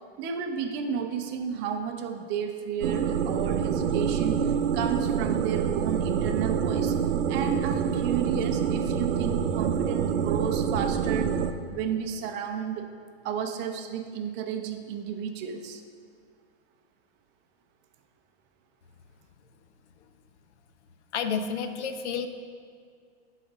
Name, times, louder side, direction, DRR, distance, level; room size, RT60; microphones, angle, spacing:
voice 1, 0.2-7.0 7.3-11.4 11.7-12.9 13.2-15.8, right 7 dB, 30° right, 6 dB, 0.6 m, -32 dB
sound 1, 2.8-11.5, right 7 dB, 80° right, 0.6 m, -26 dB
voice 2, 21.1-22.3, left 6 dB, 75° left, 8 dB, 0.8 m, -30 dB
9.1 x 4.2 x 6.0 m, 2.2 s
hypercardioid pair, 125°, 35 cm